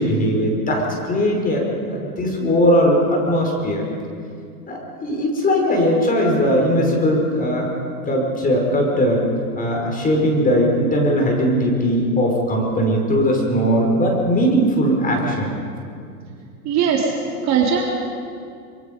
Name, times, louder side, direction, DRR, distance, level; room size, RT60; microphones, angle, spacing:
voice 1, 0.0-3.8 4.7-7.7 8.0-9.2 9.6-15.5, equal, 20° left, 0 dB, 5.3 m, -19 dB
voice 2, 16.6-17.1 17.4-17.8, right 7 dB, 35° right, 0 dB, 3.5 m, -19 dB
25.0 x 23.5 x 5.4 m, 2.3 s
hypercardioid pair, 115°, 46 cm